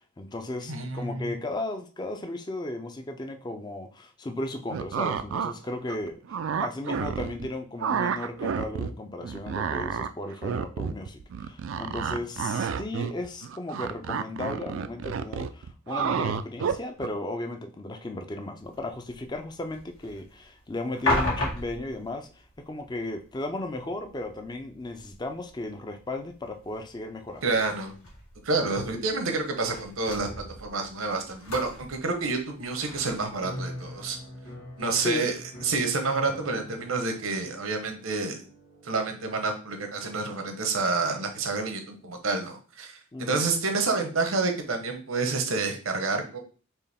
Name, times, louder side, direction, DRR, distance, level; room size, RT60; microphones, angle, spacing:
voice 1, 0.2-6.2 6.6-27.4 35.0-35.3 43.1-43.4, left 2 dB, 20° left, 6 dB, 0.4 m, -35 dB
voice 2, 0.7-1.3 27.4-27.9 28.4-34.2 34.8-35.4 35.6-38.4 38.8-46.4, right 3 dB, 85° right, 5 dB, 0.9 m, -28 dB
sound 1, 4.7-5.5 5.9-7.5 7.8-8.9 9.2-17.1, right 6 dB, 70° right, 0.3 m, -30 dB
sound 2, 18.6-33.9, left 2 dB, 85° left, 1.9 m, -37 dB
sound 3, 33.4-41.7, equal, 65° left, 1.7 m, -45 dB
4.5 x 3.0 x 3.4 m, 0.38 s
head